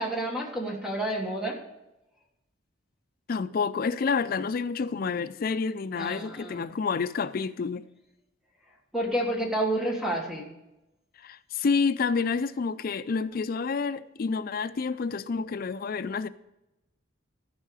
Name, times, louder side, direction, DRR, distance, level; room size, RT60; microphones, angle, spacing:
voice 1, 0.0-1.6 5.9-6.7 8.9-10.5, right 1 dB, 5° right, 1.4 m, -29 dB
voice 2, 3.3-7.8 11.2-16.3, left 5 dB, 45° left, 0.4 m, -29 dB
13.5 x 5.5 x 4.8 m
head